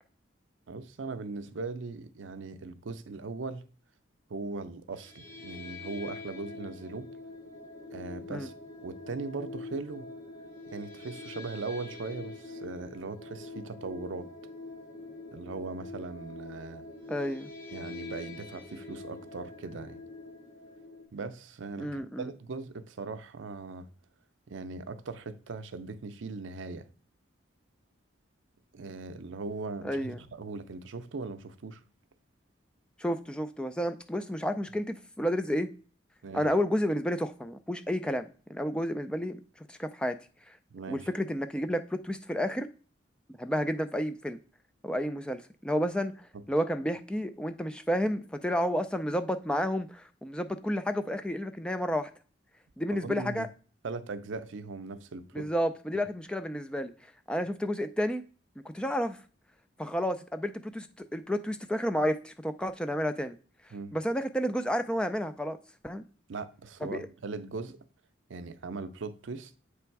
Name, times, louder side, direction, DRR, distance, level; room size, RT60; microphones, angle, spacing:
voice 1, 0.7-3.6 4.3-7.1 7.9-8.5 8.8-10.1 10.7-14.3 15.3-16.8 17.7-20.0 21.1-23.9 24.5-26.9 28.7-31.8 36.2-36.4 40.7-41.1 46.3-46.4 52.9-53.5 53.8-55.5 63.7-63.9 66.3-67.8 68.3-69.5, right 3 dB, 75° right, 0.5 m, -39 dB
sound 1, 4.9-21.0, left 3 dB, 30° left, 3.3 m, -45 dB
voice 2, 17.1-17.5 21.8-22.3 29.8-30.2 33.0-35.7 36.3-39.4 39.7-40.2 40.5-40.6 40.9-42.7 43.4-44.4 44.8-52.1 52.8-53.5 55.3-56.9 57.3-58.2 58.6-59.2 59.8-63.4 63.9-65.6 65.8-66.0 66.8-67.1, equal, 5° left, 0.3 m, -31 dB
7.9 x 3.4 x 4.6 m
head